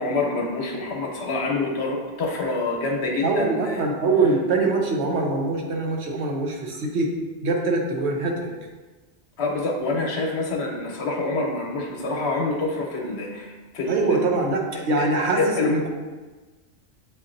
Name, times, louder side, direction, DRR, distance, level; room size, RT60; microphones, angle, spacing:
voice 1, 0.0-3.8 9.4-13.5 13.7-14.2 15.0-15.1 15.4-15.8, left 3 dB, 65° left, 0 dB, 1.0 m, -26 dB
voice 2, 3.2-7.1 7.4-8.5 13.9-15.9, right 3 dB, 70° right, 0 dB, 1.0 m, -23 dB
7.0 x 2.7 x 2.5 m, 1.3 s
omnidirectional pair, 1.2 m